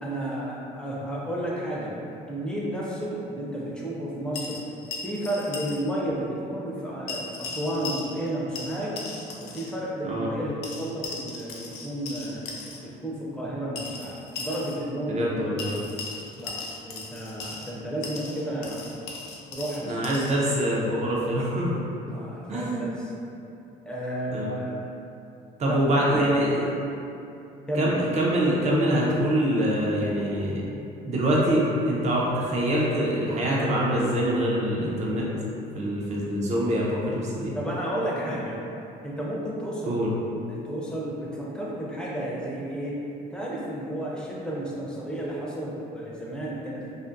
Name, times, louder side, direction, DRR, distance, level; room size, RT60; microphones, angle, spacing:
voice 1, 0.0-2.0 2.3-4.6 5.0-9.0 9.4-15.6 16.4-16.6 16.8-18.8 19.5-20.1 20.5-20.7 22.1-23.1 23.9-24.8 25.7-26.3 27.7-27.9 37.5-38.6 39.0-40.1 40.5-43.0 43.3-46.8, right 1 dB, 5° left, -5 dB, 0.5 m, -32 dB
sound 1, 4.3-5.8 6.1-6.2 7.1-8.3 8.6-9.7 10.6-12.8 13.8-14.8 15.6-17.7 18.0-20.4, left 3 dB, 75° left, 0.5 m, -37 dB
voice 2, 15.1-15.7 19.9-21.8 22.5-22.9 24.3-24.5 25.6-26.6 27.8-30.6 31.0-35.3 35.7-37.5 39.8-40.1, equal, 40° right, -4 dB, 0.6 m, -24 dB
2.6 x 2.4 x 2.5 m, 2.7 s
cardioid pair, 110°, 17 cm